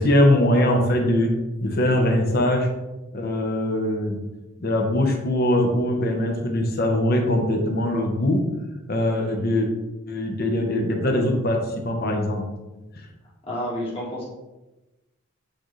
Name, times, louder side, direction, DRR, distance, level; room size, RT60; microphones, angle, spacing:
voice 1, 0.0-1.3 1.6-2.7 3.1-4.2 4.6-8.4 8.9-9.7 10.1-12.5, left 1 dB, 45° left, 2 dB, 1.0 m, -21 dB
voice 2, 13.5-14.3, equal, 25° left, -5 dB, 1.8 m, -29 dB
8.4 x 4.0 x 3.2 m, 1.0 s
head